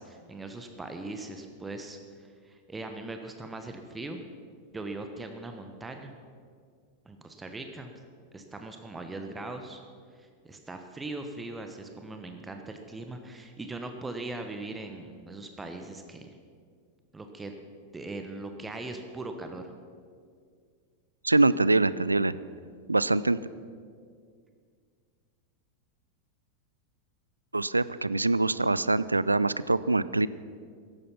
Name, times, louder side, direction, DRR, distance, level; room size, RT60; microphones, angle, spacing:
voice 1, 0.0-2.0 2.4-4.2 4.7-6.1 7.0-7.9 8.3-9.8 10.2-16.4 17.1-17.5 17.9-19.7, right 2 dB, 10° right, 5 dB, 1.1 m, -40 dB
voice 2, 21.2-22.3 22.9-23.4 27.5-30.3, right 2 dB, 80° right, 18 dB, 0.4 m, -24 dB
14.5 x 11.0 x 5.8 m, 2.1 s
figure-of-eight pair, 90°, 0 cm